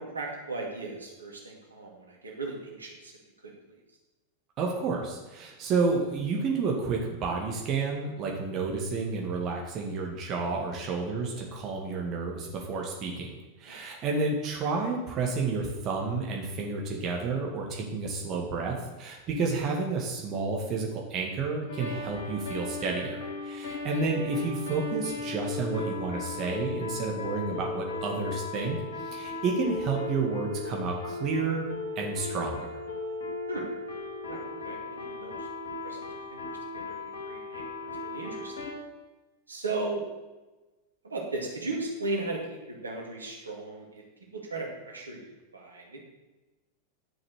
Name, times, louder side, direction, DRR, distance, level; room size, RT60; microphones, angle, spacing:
voice 1, 0.0-3.1 3.4-3.5 13.7-13.8 33.5-33.6 34.3-35.5 35.8-36.0 36.3-37.0 37.3-38.5 39.5-40.0 41.0-44.0 44.3-46.0, right 2 dB, 75° right, -1 dB, 2.4 m, -36 dB
voice 2, 4.6-31.7 32.0-32.7, right 4 dB, 35° right, 0 dB, 2.0 m, -30 dB
sound 1, 21.7-38.7, left 3 dB, 65° left, 2.2 m, -37 dB
11.0 x 6.4 x 6.4 m, 1.1 s
figure-of-eight pair, 90°, 0 cm